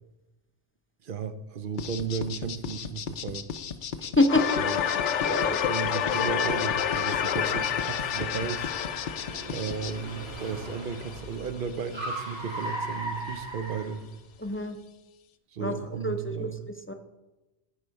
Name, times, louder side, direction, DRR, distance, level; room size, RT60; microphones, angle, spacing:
voice 1, 1.0-3.5 4.5-4.8 5.6-8.7 9.5-14.0 15.5-16.5, right 6 dB, 55° right, 10 dB, 0.8 m, -34 dB
sound 1, 1.8-9.9, left 7 dB, 55° left, 0.6 m, -36 dB
voice 2, 4.0-4.6 5.2-5.6 7.3-7.4 14.4-14.8 15.6-15.7 16.0-16.5 16.9-17.0, left 2 dB, 20° left, 5 dB, 0.4 m, -26 dB
sound 2, 4.3-11.2, left 9 dB, 85° left, 0.9 m, -29 dB
Car, 4.9-14.6, equal, 25° right, 2.3 m, -40 dB
13.5 x 5.0 x 4.6 m, 1.0 s
omnidirectional pair, 1.2 m